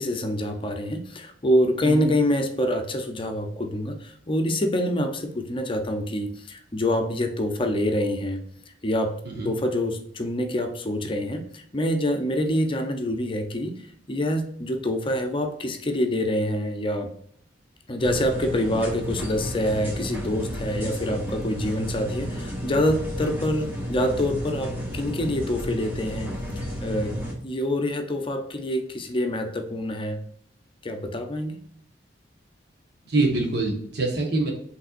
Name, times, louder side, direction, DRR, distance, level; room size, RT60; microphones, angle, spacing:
voice 1, 0.0-8.4 8.8-9.1 9.4-13.7 14.1-17.1 17.9-30.2 30.8-31.6, left 1 dB, 30° left, 5 dB, 0.6 m, -26 dB
voice 2, 1.8-2.1 9.2-9.5 33.1-34.5, right 2 dB, 65° right, 1 dB, 1.3 m, -25 dB
sound 1, 18.0-27.3, equal, 10° right, 1.2 m, -32 dB
5.4 x 3.3 x 2.5 m, 0.65 s
head